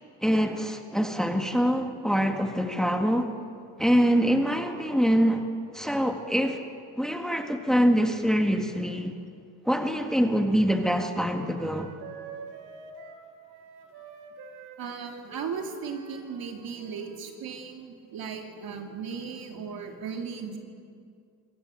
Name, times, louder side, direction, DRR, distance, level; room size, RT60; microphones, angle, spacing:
voice 1, 0.2-3.3 3.8-5.5 5.7-6.6 7.0-9.2 9.7-11.9, equal, ahead, 5 dB, 1.8 m, -24 dB
Wind instrument woodwind instrument, 9.9-17.2, right 5 dB, 90° right, 2.8 m, -46 dB
voice 2, 14.8-20.6, right 6 dB, 70° right, 3 dB, 2.9 m, -37 dB
26.0 x 15.0 x 7.8 m, 2.3 s
cardioid pair, 80°, 37 cm